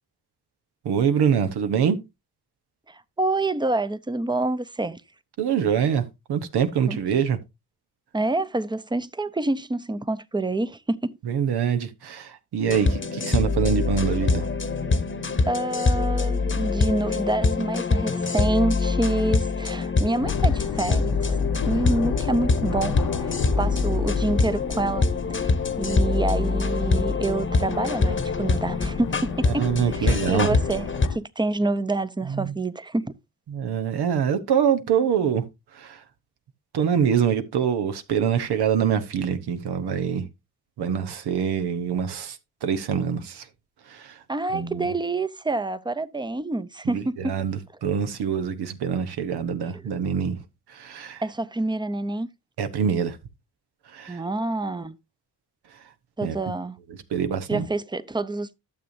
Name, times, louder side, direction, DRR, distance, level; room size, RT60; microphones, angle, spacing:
voice 1, 0.8-2.0 5.4-6.0 6.3-7.4 11.2-14.5 29.5-30.6 32.3-32.5 33.5-35.5 35.7-36.0 36.7-40.3 40.8-43.5 43.9-44.2 44.5-44.9 46.8-50.4 50.7-51.2 52.6-53.2 53.9-54.2 56.2-56.4 56.9-57.7, right 7 dB, 90° right, 1.0 m, -25 dB
voice 2, 2.9-5.0 6.9-7.0 8.1-11.2 15.4-21.4 21.7-25.1 25.4-25.5 25.8-33.1 44.3-47.4 51.2-52.3 54.1-55.0 56.2-56.8 57.5-58.6, right 2 dB, 10° right, 0.6 m, -27 dB
sound 1, 12.7-31.1, left 3 dB, 30° left, 1.0 m, -24 dB
sound 2, 20.2-31.2, left 6 dB, 65° left, 1.0 m, -32 dB
12.5 x 6.9 x 2.6 m
cardioid pair, 60°, 38 cm